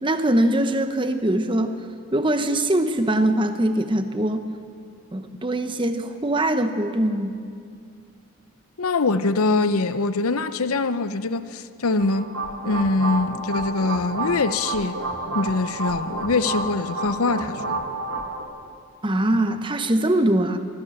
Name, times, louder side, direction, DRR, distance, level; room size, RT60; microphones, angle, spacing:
voice 1, 0.0-1.8 2.1-4.4 5.1-7.4 19.0-20.6, right 1 dB, 20° right, 1.0 m, -22 dB
voice 2, 8.8-12.4 12.6-15.0 15.3-17.8, left 3 dB, 75° left, 0.8 m, -23 dB
sound 1, 12.0-18.4, right 2 dB, 60° right, 2.1 m, -30 dB
23.5 x 16.0 x 7.2 m
head